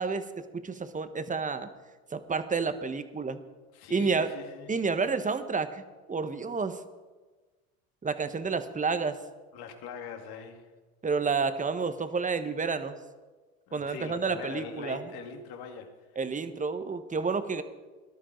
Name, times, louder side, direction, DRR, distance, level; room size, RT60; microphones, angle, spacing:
voice 1, 0.0-1.7 2.1-3.4 3.9-4.3 4.7-5.8 6.1-6.8 8.0-9.2 11.0-12.9 13.7-15.0 16.2-17.6, right 4 dB, 20° right, 10 dB, 1.3 m, -30 dB
voice 2, 3.7-4.7 9.5-10.7 13.7-15.9, left 6 dB, 60° left, 4 dB, 2.5 m, -42 dB
19.5 x 12.0 x 4.6 m, 1.3 s
hypercardioid pair, 85°, 43 cm